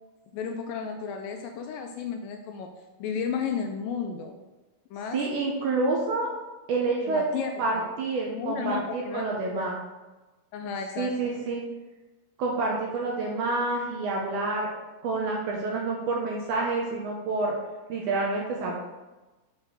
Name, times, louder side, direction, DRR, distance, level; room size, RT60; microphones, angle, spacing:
voice 1, 0.3-2.7 3.0-4.4 4.9-5.2 7.1-7.9 8.3-9.8 10.5-11.3, left 6 dB, 80° left, 4 dB, 2.2 m, -33 dB
voice 2, 5.1-6.3 6.7-7.3 7.6-9.8 11.0-11.6 12.4-14.7 15.0-17.5 17.9-18.8, right 3 dB, 70° right, -2 dB, 2.3 m, -28 dB
6.9 x 4.3 x 6.3 m, 1.1 s
omnidirectional pair, 4.0 m